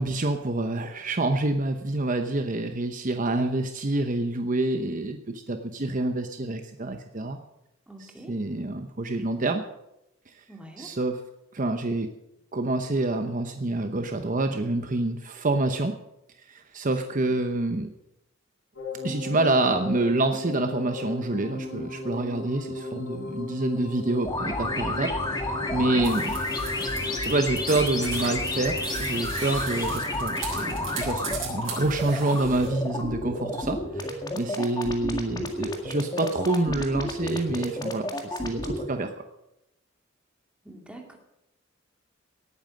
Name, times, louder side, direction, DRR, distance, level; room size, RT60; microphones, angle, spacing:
voice 1, 0.0-7.4 8.0-9.6 10.3-10.4 10.8-11.2 11.5-12.1 12.5-15.9 16.5-17.9 19.0-26.3 27.2-39.1, right 2 dB, 40° right, 6 dB, 0.9 m, -27 dB
voice 2, 7.9-8.3 10.5-10.9 40.6-41.2, right 1 dB, 5° right, 2 dB, 2.5 m, -44 dB
sound 1, 18.7-31.3, left 2 dB, 75° left, 5.6 m, -37 dB
sound 2, 24.2-38.8, left 2 dB, 20° left, 1.9 m, -30 dB
sound 3, 26.0-32.7, right 5 dB, 70° right, 6.9 m, -38 dB
18.5 x 9.1 x 6.4 m, 0.87 s
head